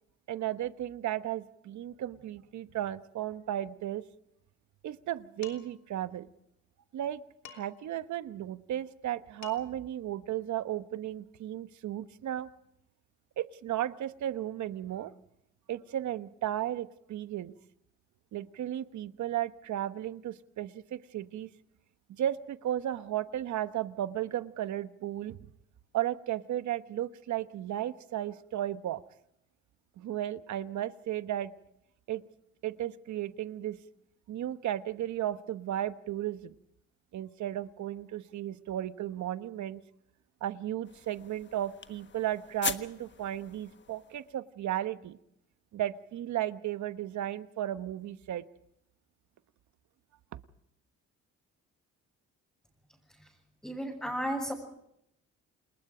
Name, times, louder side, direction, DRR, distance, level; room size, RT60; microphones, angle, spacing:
voice 1, 0.3-4.0 4.8-6.3 6.9-7.2 7.5-12.5 13.4-15.1 15.7-17.5 18.3-21.5 22.1-25.5 25.9-29.0 30.0-31.5 32.1-32.2 32.6-33.8 34.3-36.5 37.1-39.8 40.4-45.2 45.7-48.4, right 12 dB, 70° right, 12 dB, 1.1 m, -34 dB
Dishes pots and pans, 5.4-5.9 7.4-7.9 9.1-9.2 9.4-9.9, left 8 dB, 70° left, 3.2 m, -50 dB
sound 1, 40.8-44.4, left 6 dB, 40° left, 1.4 m, -41 dB
voice 2, 53.6-54.5, equal, 5° left, -2 dB, 6.8 m, -34 dB
29.0 x 20.5 x 5.0 m, 0.77 s
cardioid pair, 90°, 30 cm